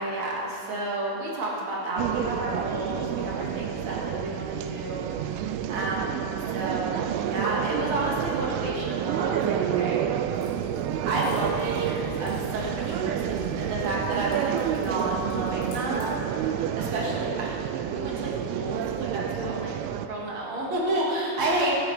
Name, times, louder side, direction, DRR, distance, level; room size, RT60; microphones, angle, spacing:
voice 1, 0.0-5.4 5.7-10.0 11.0-19.7 20.1-21.8, right 1 dB, 45° right, -4 dB, 2.7 m, -31 dB
sound 1, 2.0-20.1, right 10 dB, 85° right, 3.1 m, -29 dB
Typing, 10.3-16.1, left 2 dB, 75° left, 6.1 m, -43 dB
16.0 x 12.5 x 5.0 m, 3.0 s
omnidirectional pair, 5.6 m